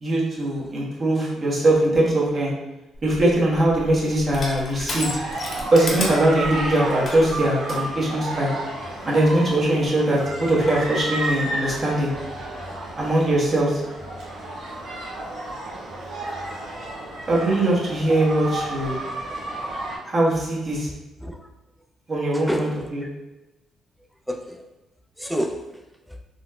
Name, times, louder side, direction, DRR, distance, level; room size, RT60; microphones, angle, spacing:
voice 1, 0.0-2.5 3.0-5.1 5.7-8.5 9.0-12.1 13.0-13.8 17.3-19.0 20.0-20.9 22.1-23.0, right 1 dB, 45° right, -5 dB, 1.1 m, -21 dB
Crushing, 2.9-7.8, left 2 dB, 45° left, 0.8 m, -33 dB
sound 1, 5.0-20.0, right 1 dB, 80° right, 1.0 m, -32 dB
voice 2, 22.3-23.1 24.3-24.7 25.2-26.2, equal, ahead, 3 dB, 0.4 m, -30 dB
4.0 x 2.1 x 2.4 m, 1.0 s
supercardioid pair, 70°, 0 cm